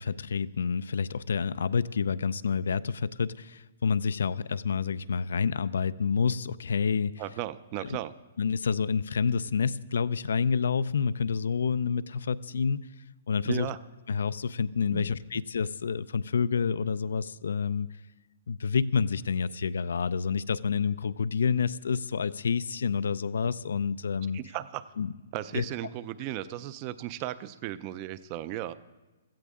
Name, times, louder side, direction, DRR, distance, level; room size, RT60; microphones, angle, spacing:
voice 1, 0.0-7.2 8.4-12.9 13.3-13.7 14.1-17.9 18.5-24.4 25.0-25.1 25.5-25.6, left 6 dB, 85° left, 16 dB, 0.4 m, -28 dB
voice 2, 7.2-8.1 13.4-13.8 14.9-15.0 24.3-24.9 25.3-28.7, right 13 dB, 25° right, 16 dB, 0.4 m, -35 dB
16.5 x 14.0 x 3.6 m, 1.2 s
hypercardioid pair, 170°, 0 cm